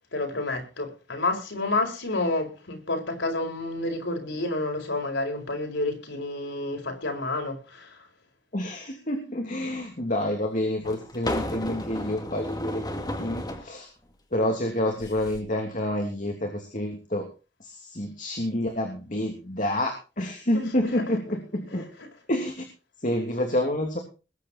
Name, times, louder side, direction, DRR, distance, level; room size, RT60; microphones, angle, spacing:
voice 1, 0.1-8.0 20.5-20.6, left 2 dB, 90° left, 5.1 m, -29 dB
voice 2, 8.5-12.8 13.2-13.9 14.3-17.3 17.6-21.8 22.3-22.6 23.0-24.0, left 1 dB, 45° left, 3.1 m, -28 dB
sound 1, 9.7-9.8 10.8-13.7 15.0-15.4, left 1 dB, 20° left, 2.3 m, -33 dB
21.0 x 8.7 x 4.5 m
head